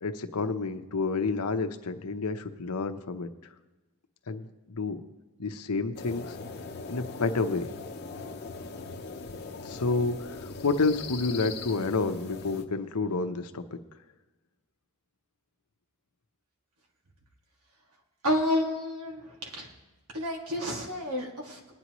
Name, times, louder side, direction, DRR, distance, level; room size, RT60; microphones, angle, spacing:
voice 1, 0.0-3.3 4.3-5.0 5.4-6.4 6.9-7.7 9.6-13.8, left 3 dB, 90° left, 8 dB, 0.8 m, -29 dB
sound 1, 5.9-12.6, left 4 dB, 45° left, 0.8 m, -40 dB
voice 2, 18.2-19.7 20.1-21.7, left 1 dB, 85° right, 0 dB, 2.2 m, -30 dB
21.0 x 9.7 x 3.1 m, 1.1 s
head